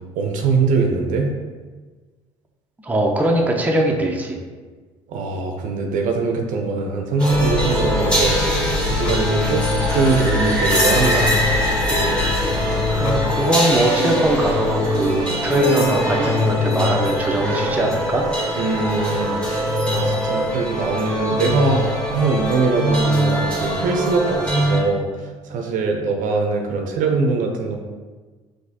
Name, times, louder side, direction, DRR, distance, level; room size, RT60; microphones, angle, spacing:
voice 1, 0.1-1.3 5.1-9.6 9.9-11.3 18.6-25.1 25.5-27.8, right 4 dB, 55° right, 2 dB, 0.7 m, -22 dB
voice 2, 2.8-4.4 13.0-18.3, right 1 dB, 10° right, 0 dB, 0.7 m, -21 dB
sound 1, 7.2-24.8, equal, 5° left, 1.3 m, -22 dB
sound 2, 7.3-13.3, left 6 dB, 65° left, 0.5 m, -26 dB
5.9 x 2.7 x 2.8 m, 1.4 s
hypercardioid pair, 60°, 16 cm